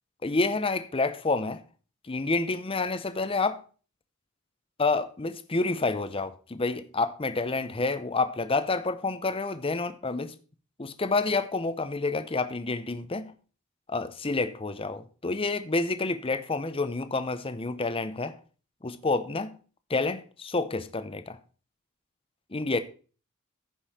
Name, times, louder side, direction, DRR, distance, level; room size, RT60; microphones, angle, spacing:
voice 1, 0.2-1.6 2.1-3.6 4.8-10.3 10.8-13.3 13.9-18.4 18.8-19.5 19.9-21.4 22.5-22.8, left 3 dB, 25° left, 0.7 m, -28 dB
15.0 x 5.5 x 4.2 m
head